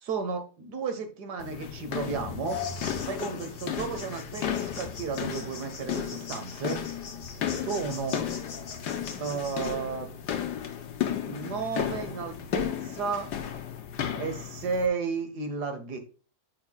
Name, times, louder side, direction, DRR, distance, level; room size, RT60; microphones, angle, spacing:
voice 1, 0.0-2.6 3.1-6.8 7.6-8.2 9.2-10.1 11.2-13.3 14.1-16.0, right 5 dB, 75° right, 7 dB, 1.8 m, -33 dB
sound 1, 1.4-14.9, left 9 dB, 85° left, 1.5 m, -34 dB
sound 2, 2.4-9.7, left 5 dB, 40° left, 1.0 m, -42 dB
8.6 x 5.6 x 2.3 m, 0.37 s
omnidirectional pair, 1.8 m